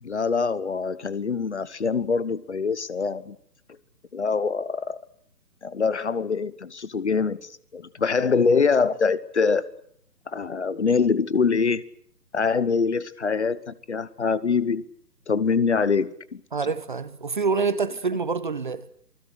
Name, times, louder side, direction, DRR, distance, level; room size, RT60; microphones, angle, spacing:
voice 1, 0.0-3.4 4.1-5.0 5.6-9.6 10.3-11.8 12.3-14.9 15.3-16.4, left 5 dB, 45° left, 1.3 m, -24 dB
voice 2, 16.5-18.9, right 4 dB, 30° right, 1.0 m, -26 dB
28.5 x 20.5 x 8.0 m
figure-of-eight pair, 145°, 50 cm